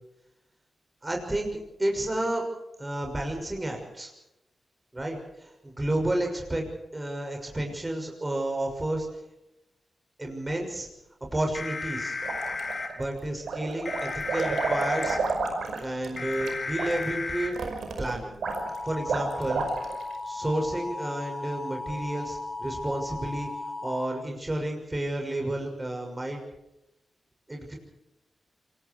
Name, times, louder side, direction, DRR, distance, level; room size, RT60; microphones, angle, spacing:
voice 1, 1.0-2.4 2.8-4.1 4.9-9.1 10.2-10.9 11.2-12.2 13.0-15.2 15.8-17.5 18.0-18.3 18.8-19.6 20.2-23.5 23.8-26.4 27.5-27.7, right 1 dB, 20° right, 2 dB, 6.3 m, -31 dB
sound 1, 11.5-12.9 13.8-15.2 16.2-17.5 18.4-24.0, left 3 dB, 50° left, 6.2 m, -35 dB
sound 2, 12.2-13.0 13.4-20.1, right 4 dB, 90° right, 5.3 m, -31 dB
27.0 x 23.5 x 4.7 m, 0.89 s
cardioid pair, 80°, 0 cm